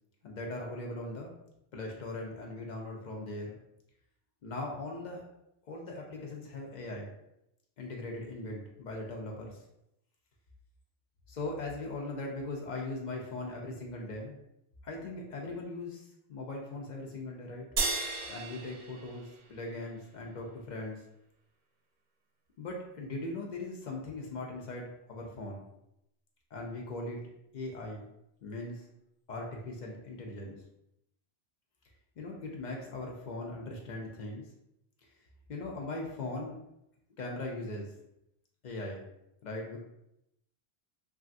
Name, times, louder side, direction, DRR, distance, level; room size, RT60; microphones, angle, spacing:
voice 1, 0.2-1.3 1.7-3.6 4.4-5.2 5.7-7.1 7.8-9.6 11.3-14.4 14.8-17.7 18.3-21.0 22.6-25.7 26.5-27.2 27.5-28.1 28.4-28.9 29.3-30.6 32.2-34.4 35.5-36.6 37.2-37.9 38.6-39.0 39.4-39.8, left 2 dB, 55° left, -1 dB, 0.6 m, -39 dB
sound 1, 17.8-20.3, right 3 dB, 55° right, 0.6 m, -35 dB
3.1 x 2.4 x 2.5 m, 0.82 s
omnidirectional pair, 1.0 m